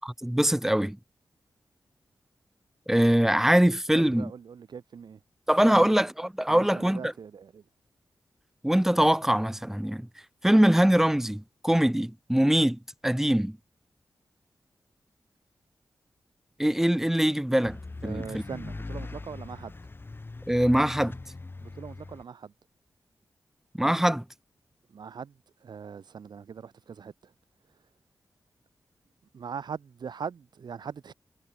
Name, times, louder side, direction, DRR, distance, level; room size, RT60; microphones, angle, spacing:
voice 1, 0.0-1.0 2.9-4.3 5.5-7.1 8.6-10.1 10.4-13.6 16.6-18.4 20.5-21.2 23.8-24.2, equal, 5° right, 1.0 m, -23 dB
voice 2, 3.9-5.2 5.6-6.0 6.5-7.6 18.0-19.7 21.6-22.5 24.9-27.3 27.7-27.9 29.3-31.1, right 6 dB, 85° right, 6.0 m, -41 dB
sound 1, 17.6-22.2, left 3 dB, 30° left, 3.7 m, -41 dB
wide cardioid pair, 115°, 7 cm